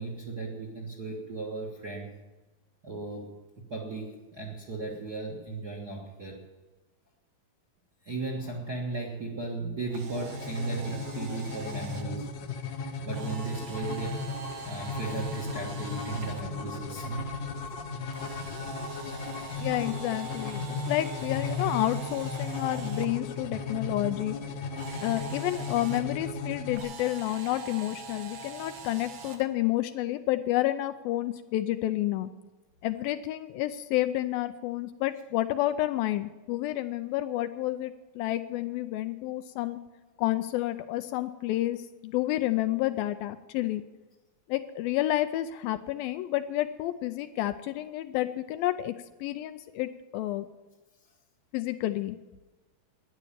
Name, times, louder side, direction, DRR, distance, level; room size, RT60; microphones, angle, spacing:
voice 1, 0.0-2.1 2.8-3.3 3.7-6.4 8.0-12.3 13.0-14.3 14.6-17.3, right 3 dB, 45° right, 0 dB, 1.3 m, -36 dB
Camera, 9.8-12.0 13.1-16.4 18.1-23.1 24.7-26.0 26.7-29.4, right 4 dB, 75° right, 3.3 m, -43 dB
sound 1, 10.1-26.8, left 3 dB, 65° left, 1.8 m, -36 dB
voice 2, 19.6-24.4 25.0-32.3 32.8-39.8 40.2-43.8 44.5-48.9 49.2-50.5 51.5-52.2, left 15 dB, 80° left, 10 dB, 2.2 m, -30 dB
12.0 x 10.5 x 8.6 m, 1.2 s
omnidirectional pair, 4.5 m